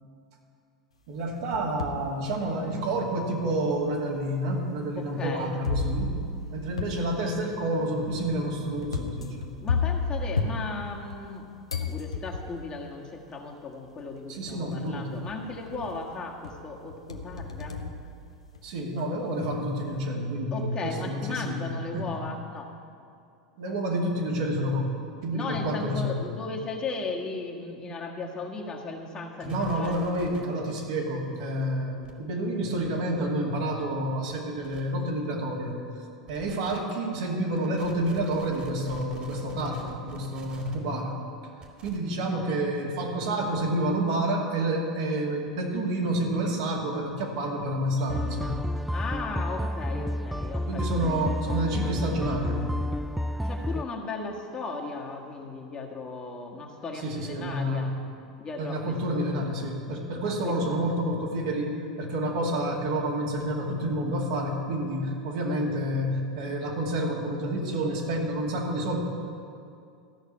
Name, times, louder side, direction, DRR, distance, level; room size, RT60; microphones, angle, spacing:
voice 1, 1.1-6.1 6.5-9.6 14.3-15.2 18.6-22.2 23.6-24.8 25.2-26.2 29.4-36.0 36.3-41.2 41.8-48.6 50.7-52.7 56.9-58.0 58.6-69.0, right 1 dB, 60° right, -2 dB, 2.4 m, -29 dB
sound 1, 1.2-2.1 2.7-2.8 3.7-3.8 5.6-11.4 11.7-12.7 13.9-14.0 14.5-14.9 15.3-16.1 16.4-18.8, left 4 dB, 85° left, 0.9 m, -33 dB
voice 2, 5.0-5.5 9.6-11.5 11.7-17.8 20.5-22.7 25.3-29.9 48.9-51.2 53.4-57.9 58.4-58.9 60.2-60.8, left 3 dB, 25° left, 0 dB, 1.6 m, -36 dB
sound 2, 29.4-30.4 31.8-32.1 32.8-32.9 34.3-34.4 34.6-34.8 36.3-36.8 37.5-40.8 41.6-42.0, right 3 dB, 35° right, 2.3 m, -47 dB
sound 3, 48.1-53.8, equal, ahead, 0.3 m, -30 dB
13.5 x 6.5 x 8.7 m, 2.5 s
figure-of-eight pair, 85°, 3 cm